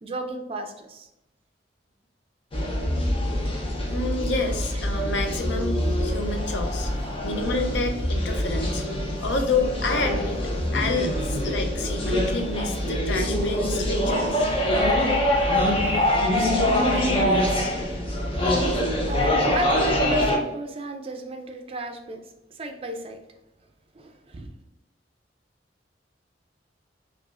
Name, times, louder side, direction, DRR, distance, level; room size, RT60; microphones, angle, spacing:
voice 1, 0.0-1.1 4.3-4.6 19.1-22.2 22.5-23.2 23.9-24.5, right 1 dB, 35° right, 5 dB, 0.5 m, -33 dB
sound 1, 2.5-20.4, left 1 dB, 30° left, 0.7 m, -24 dB
voice 2, 3.9-6.9 7.2-8.8 9.2-10.4 10.7-14.5, left 3 dB, 70° left, 5 dB, 0.6 m, -29 dB
4.9 x 2.4 x 2.4 m, 0.92 s
head